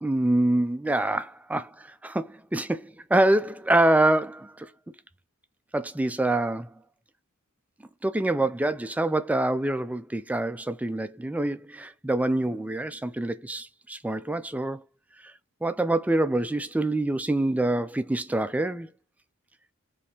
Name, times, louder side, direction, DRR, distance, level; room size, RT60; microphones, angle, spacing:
voice 1, 0.0-4.7 5.7-6.7 8.0-14.8 15.6-18.9, right 1 dB, 5° right, 0.3 m, -25 dB
4.2 x 3.2 x 2.9 m
head